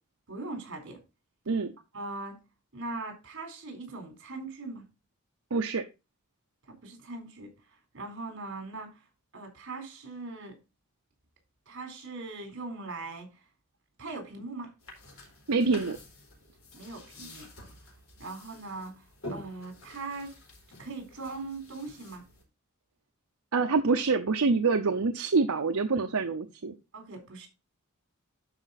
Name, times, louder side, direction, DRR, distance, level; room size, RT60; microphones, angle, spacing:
voice 1, 0.3-1.0 1.9-2.4 2.7-4.8 6.7-7.5 7.9-9.0 9.3-10.6 11.7-13.3 14.0-14.7 16.7-17.5 18.2-18.9 19.3-20.4 20.8-22.2 26.9-27.5, right 3 dB, 60° right, 3.9 m, -40 dB
voice 2, 5.5-5.8 15.5-16.0 23.5-26.7, right 4 dB, 80° right, 0.7 m, -26 dB
sound 1, 14.8-22.4, left 1 dB, 70° left, 4.4 m, -48 dB
11.5 x 5.0 x 4.1 m
head